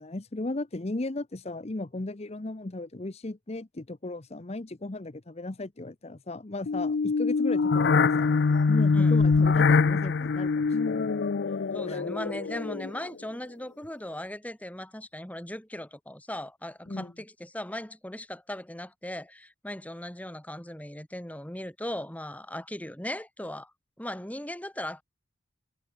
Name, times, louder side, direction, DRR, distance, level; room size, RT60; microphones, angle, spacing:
voice 1, 0.0-8.3 8.7-11.2 11.9-12.0 16.9-17.1, left 2 dB, 35° left, 0.8 m, -36 dB
sound 1, 6.7-13.1, left 4 dB, 60° left, 0.5 m, -24 dB
voice 2, 8.9-9.2 11.7-23.7 24.0-25.0, left 1 dB, 10° left, 2.6 m, -38 dB
head